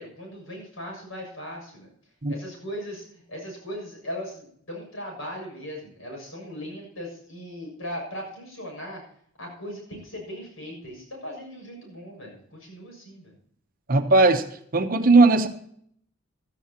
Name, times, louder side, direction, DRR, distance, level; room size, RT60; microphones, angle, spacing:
voice 1, 0.0-1.9 2.3-9.0 9.4-13.4, equal, 85° left, 0 dB, 7.0 m, -38 dB
voice 2, 13.9-14.5 14.7-15.5, right 3 dB, 45° right, 8 dB, 1.0 m, -17 dB
15.5 x 14.0 x 2.9 m, 0.64 s
head